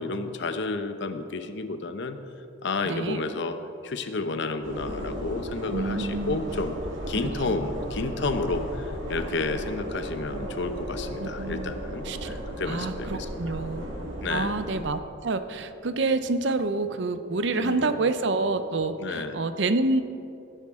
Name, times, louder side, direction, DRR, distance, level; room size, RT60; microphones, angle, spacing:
voice 1, 0.0-2.2 2.6-3.6 3.8-6.7 7.1-13.6 14.2-14.6 17.5-18.1 19.0-19.4, left 3 dB, 65° left, 8 dB, 0.8 m, -31 dB
voice 2, 2.9-3.2 5.7-6.4 7.4-7.6 11.2-11.7 12.0-12.3 12.7-13.9 14.3-20.0, right 3 dB, 65° right, 10 dB, 0.7 m, -28 dB
sound 1, 4.6-14.9, right 1 dB, 90° right, 2.1 m, -35 dB
17.5 x 10.0 x 3.7 m, 2.7 s
head